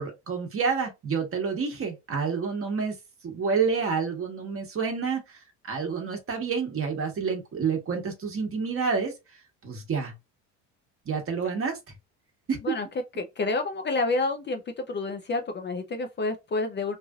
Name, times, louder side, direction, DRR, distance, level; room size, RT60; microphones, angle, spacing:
voice 1, 0.0-2.9 3.2-5.2 5.7-9.1 9.6-10.1 11.0-11.8 12.5-12.7, right 5 dB, 40° right, 1.3 m, -28 dB
voice 2, 13.2-14.6 14.9-17.0, left 3 dB, 30° left, 0.6 m, -28 dB
3.2 x 2.6 x 2.3 m
supercardioid pair, 95°, 36 cm